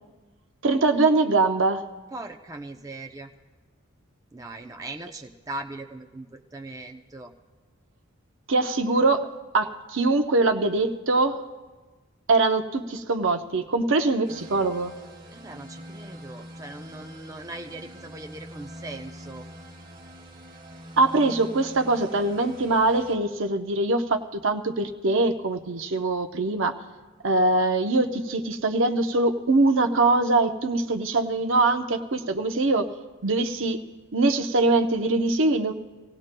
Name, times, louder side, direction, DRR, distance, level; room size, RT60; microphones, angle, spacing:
voice 1, 0.6-1.9 8.5-11.4 12.3-15.0 21.0-26.7 27.2-32.9 33.2-33.8 34.1-35.7, right 2 dB, 65° right, 6 dB, 0.8 m, -23 dB
voice 2, 2.1-3.3 4.3-7.3 15.3-19.5, right 2 dB, 15° right, 3 dB, 0.6 m, -39 dB
sound 1, 14.2-23.2, equal, 45° right, 1.4 m, -44 dB
25.5 x 17.0 x 2.2 m, 1.3 s
head